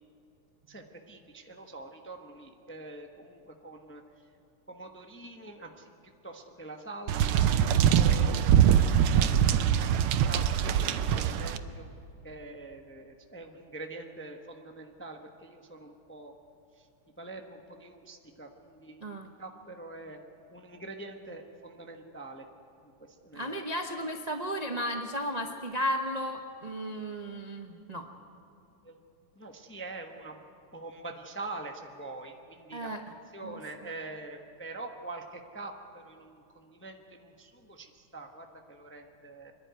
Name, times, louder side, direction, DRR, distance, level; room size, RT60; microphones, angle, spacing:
voice 1, 0.7-4.0 4.7-5.9 6.2-7.5 7.9-9.8 10.3-10.9 11.2-11.9 12.2-16.3 17.2-20.2 20.5-22.4 23.2-23.6 28.8-28.9 29.4-30.4 30.7-32.9 33.3-39.5, right 2 dB, 15° left, 3 dB, 0.4 m, -44 dB
sound 1, 7.1-11.6, right 9 dB, 85° right, 1.6 m, -23 dB
voice 2, 23.3-28.1 32.7-33.0 33.4-33.6, equal, 55° right, 3 dB, 0.4 m, -34 dB
27.0 x 11.0 x 9.5 m, 2.7 s
omnidirectional pair, 2.3 m